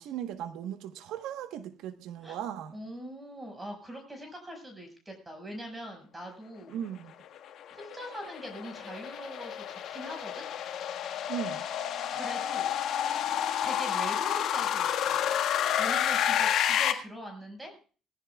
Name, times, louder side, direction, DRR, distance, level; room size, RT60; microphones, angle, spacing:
voice 1, 0.0-2.8 6.7-7.1 11.3-11.6, right 10 dB, 75° right, 1.2 m, -37 dB
voice 2, 2.7-6.8 7.7-10.5 12.1-12.7 13.6-15.2 15.8-17.7, equal, 15° right, 5.5 m, -42 dB
sound 1, 7.3-16.9, left 10 dB, 65° left, 1.7 m, -30 dB
19.5 x 15.5 x 2.4 m
cardioid pair, 115°, 0 cm